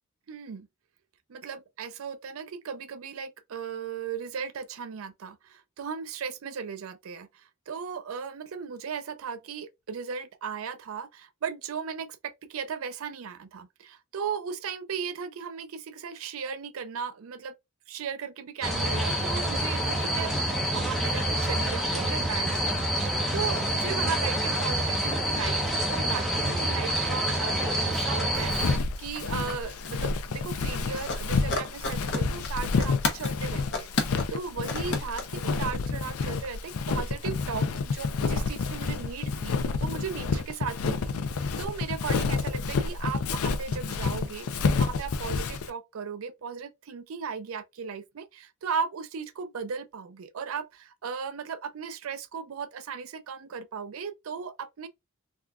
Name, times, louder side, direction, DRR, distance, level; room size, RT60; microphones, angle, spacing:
voice 1, 0.3-0.7 1.3-17.5 17.9-20.4 20.7-33.9 34.3-41.1 41.6-54.9, right 6 dB, 75° right, 0.4 m, -36 dB
sound 1, 18.6-28.8, right 1 dB, ahead, 0.7 m, -27 dB
Walk footsteps, 28.4-45.7, left 4 dB, 85° left, 0.5 m, -29 dB
sound 2, 28.7-29.6 29.8-30.8 31.1-33.4 33.7-36.1 36.4-36.5, left 3 dB, 55° left, 0.8 m, -32 dB
3.6 x 2.3 x 2.3 m
head